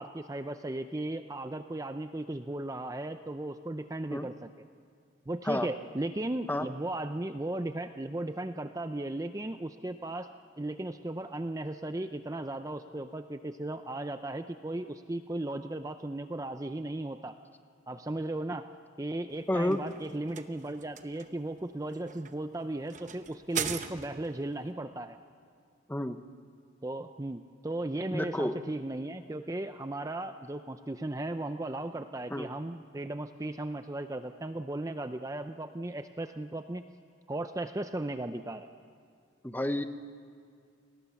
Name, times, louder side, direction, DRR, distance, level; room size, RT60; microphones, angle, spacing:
voice 1, 0.0-4.5 5.3-10.3 10.6-17.4 17.9-18.7 19.0-25.2 26.8-36.8 37.3-38.7, right 1 dB, 15° right, 9 dB, 0.5 m, -36 dB
sound 1, 19.3-24.4, right 7 dB, 40° right, 0.9 m, -40 dB
voice 2, 19.5-19.8 25.9-26.2 28.1-28.5 32.3-32.5 39.4-39.8, left 1 dB, 10° left, 9 dB, 0.8 m, -30 dB
29.0 x 19.5 x 7.0 m, 2.3 s
head